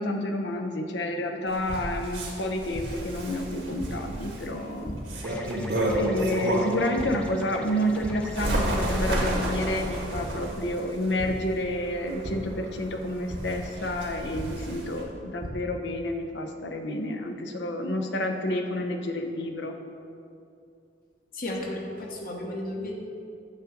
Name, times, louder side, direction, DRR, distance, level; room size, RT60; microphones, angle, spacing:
voice 1, 0.0-4.9 5.2-5.5 5.9-19.8, left 1 dB, 75° left, 4 dB, 0.7 m, -30 dB
Bird, 1.5-6.9 7.4-15.0, right 1 dB, 80° right, 1.7 m, -31 dB
sound 1, 1.7-1.8 2.7-2.9 3.8-3.9 4.8-4.9 5.9-6.0 7.0-7.1 7.5-7.7 8.0-8.1 9.1-9.2 10.1-10.2 11.2-11.3 12.2-12.3 13.3-13.4 14.4-14.5 15.1-15.5, equal, 30° right, 0.9 m, -36 dB
sound 2, 5.2-9.6, equal, 5° left, 0.5 m, -42 dB
voice 2, 21.3-22.9, left 1 dB, 50° left, -1 dB, 1.1 m, -33 dB
8.5 x 3.8 x 6.4 m, 2.5 s
head